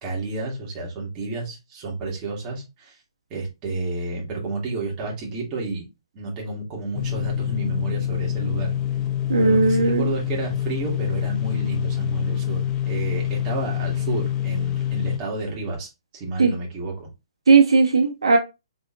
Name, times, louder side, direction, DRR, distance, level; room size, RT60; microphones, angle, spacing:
voice 1, 0.0-3.0 3.3-5.9 6.1-8.7 9.4-17.1, right 3 dB, 25° right, -2 dB, 2.3 m, -30 dB
sound 1, 6.9-15.2, left 11 dB, 20° left, 0.6 m, -26 dB
voice 2, 9.3-10.1 16.4-16.5 17.5-18.4, right 4 dB, 85° right, 4 dB, 1.2 m, -17 dB
4.3 x 4.3 x 2.4 m, 0.24 s
hypercardioid pair, 145°, 3 cm